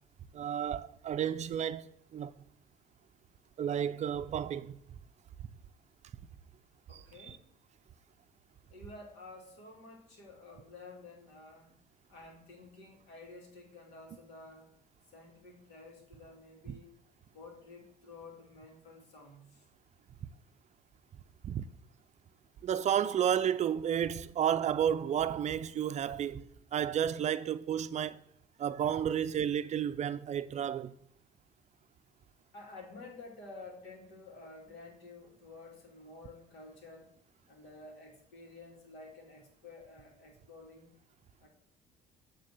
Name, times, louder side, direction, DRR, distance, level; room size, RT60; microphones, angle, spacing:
voice 1, 0.3-2.3 3.6-4.7 6.9-7.4 16.7-16.8 21.4-21.7 22.6-26.4 26.7-28.2 28.6-30.9, right 9 dB, 45° right, 0.4 m, -32 dB
voice 2, 6.9-7.4 8.7-11.8 12.1-14.7 15.1-16.9 17.3-19.7 32.5-37.1 37.5-41.0 41.4-41.5, left 3 dB, 85° left, 2.5 m, -51 dB
8.8 x 3.8 x 6.6 m
cardioid pair, 110°, 17 cm